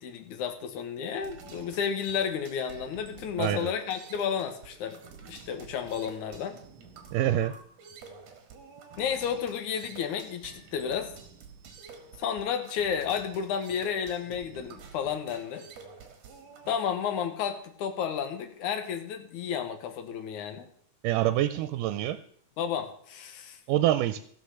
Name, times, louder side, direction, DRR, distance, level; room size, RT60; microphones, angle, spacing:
voice 1, 0.0-5.0 5.3-6.6 9.0-11.1 12.2-15.7 16.7-20.7 22.6-23.6, left 7 dB, 70° left, 7 dB, 2.6 m, -32 dB
sound 1, 1.2-16.7, right 5 dB, 60° right, 2.6 m, -49 dB
voice 2, 3.4-3.7 7.1-7.5 21.0-22.2 23.7-24.2, right 13 dB, 85° right, 12 dB, 2.2 m, -26 dB
15.5 x 5.8 x 6.4 m, 0.64 s
omnidirectional pair, 3.7 m